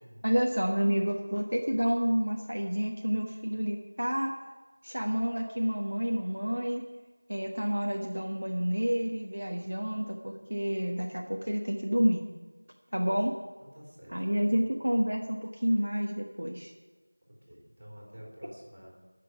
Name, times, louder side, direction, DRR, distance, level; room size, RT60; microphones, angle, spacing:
voice 1, 0.2-4.3 4.8-6.8 7.3-12.2 12.9-13.3 14.1-16.7, equal, 65° right, 0 dB, 1.3 m, -29 dB
voice 2, 13.6-14.6 17.2-18.9, equal, 30° right, -3 dB, 3.5 m, -50 dB
10.5 x 6.8 x 9.2 m, 1.3 s
figure-of-eight pair, 175°, 0 cm